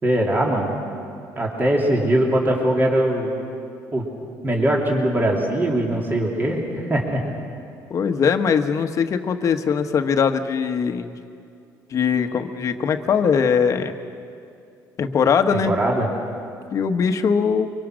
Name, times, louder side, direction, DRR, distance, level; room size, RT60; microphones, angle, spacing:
voice 1, 0.0-0.8 1.4-3.3 3.9-4.0 4.4-7.2 15.5-16.1, right 1 dB, 25° right, -2 dB, 3.3 m, -21 dB
voice 2, 7.9-11.2 11.9-13.9 15.0-15.7 16.7-17.7, left 6 dB, 45° left, 7 dB, 1.2 m, -21 dB
24.0 x 23.0 x 6.4 m, 2.5 s
cardioid pair, 115°, 7 cm